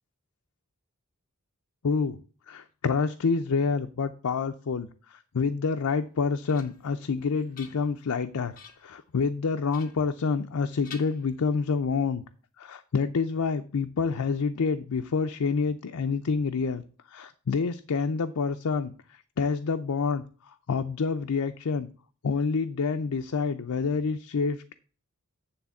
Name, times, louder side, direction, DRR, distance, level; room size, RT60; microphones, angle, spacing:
voice 1, 1.8-2.2 2.5-8.5 8.8-12.2 12.6-21.9 22.2-24.7, left 5 dB, 75° left, 8 dB, 0.5 m, -28 dB
sound 1, 6.0-7.0 7.4-8.2 8.5-9.0 9.7-10.6 10.8-11.8, left 6 dB, 40° left, 1.3 m, -50 dB
9.8 x 3.5 x 7.1 m, 0.40 s
head